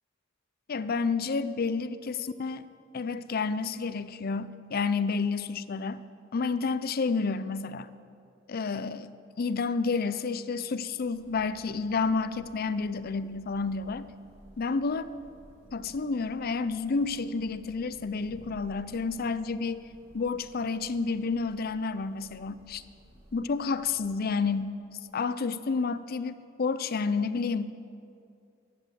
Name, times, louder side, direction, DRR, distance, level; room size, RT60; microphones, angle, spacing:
voice 1, 0.7-2.7 2.9-6.0 6.3-7.9 8.5-9.1 9.4-14.0 14.6-15.1 15.7-19.9 20.1-22.8 23.3-24.8 25.1-27.8, left 4 dB, 50° left, 13 dB, 0.5 m, -30 dB
Thunder / Rain, 10.6-24.9, equal, 15° right, 3.6 m, -56 dB
11.5 x 10.0 x 7.5 m, 2.5 s
head